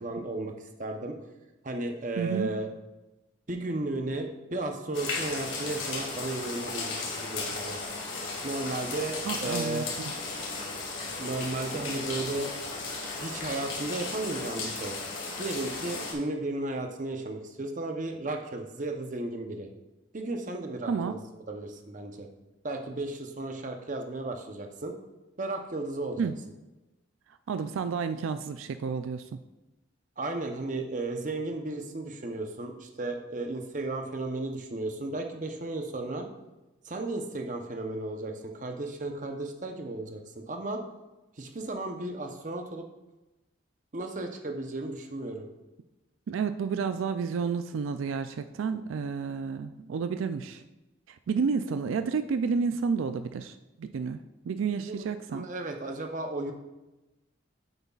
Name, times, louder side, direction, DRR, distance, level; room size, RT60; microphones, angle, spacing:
voice 1, 0.0-1.2 1.6-2.7 3.5-7.8 8.4-9.9 11.2-12.5 13.2-14.9 15.4-19.7 20.1-21.2 21.5-22.3 22.6-24.9 25.4-26.3 30.2-36.3 36.8-40.8 41.4-42.8 43.9-45.5 54.9-56.5, right 2 dB, 40° right, 4 dB, 0.8 m, -34 dB
voice 2, 2.2-2.5 9.3-10.1 20.9-21.1 26.2-26.4 27.5-29.4 46.3-50.6 51.1-54.2 54.4-55.5, right 5 dB, 85° right, 10 dB, 0.4 m, -31 dB
sound 1, 4.9-16.1, left 3 dB, 75° left, 2.1 m, -35 dB
9.2 x 8.0 x 2.4 m, 1.0 s
head